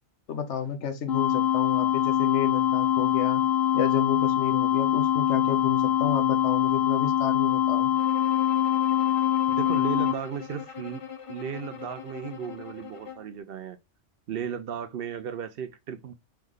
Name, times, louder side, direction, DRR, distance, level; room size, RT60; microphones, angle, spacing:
voice 1, 0.3-3.4 3.7-7.9, left 8 dB, 85° left, 1.1 m, -31 dB
sound 1, 1.1-10.1, left 11 dB, 65° left, 0.8 m, -24 dB
Bowed string instrument, 8.0-13.4, left 8 dB, 35° left, 0.6 m, -42 dB
voice 2, 9.5-11.0 11.3-13.8 14.3-16.1, right 8 dB, 65° right, 0.7 m, -35 dB
3.6 x 3.3 x 3.6 m
omnidirectional pair, 1.2 m